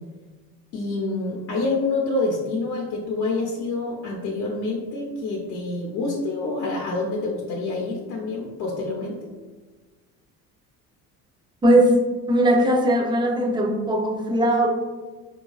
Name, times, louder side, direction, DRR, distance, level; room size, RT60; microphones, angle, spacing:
voice 1, 0.7-9.3, left 3 dB, 80° left, -1 dB, 0.7 m, -27 dB
voice 2, 12.3-14.7, right 1 dB, 15° right, 1 dB, 0.4 m, -19 dB
4.7 x 2.2 x 2.3 m, 1.3 s
cardioid pair, 125°, 33 cm